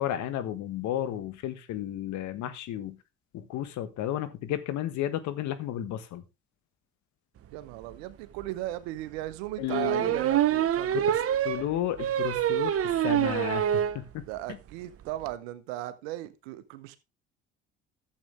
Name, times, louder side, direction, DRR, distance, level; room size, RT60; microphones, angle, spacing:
voice 1, 0.0-3.0 3.3-6.2 9.6-10.1 10.9-11.1 11.4-14.2, left 11 dB, 65° left, 1.5 m, -33 dB
voice 2, 7.5-11.2 14.3-17.0, right 15 dB, 80° right, 1.1 m, -37 dB
sound 1, 7.9-8.0 8.4-8.5 9.7-14.0 14.4-14.5 14.7-14.8 15.0-15.3, right 11 dB, 50° right, 0.9 m, -26 dB
11.5 x 7.8 x 3.4 m
hypercardioid pair, 65°, 30 cm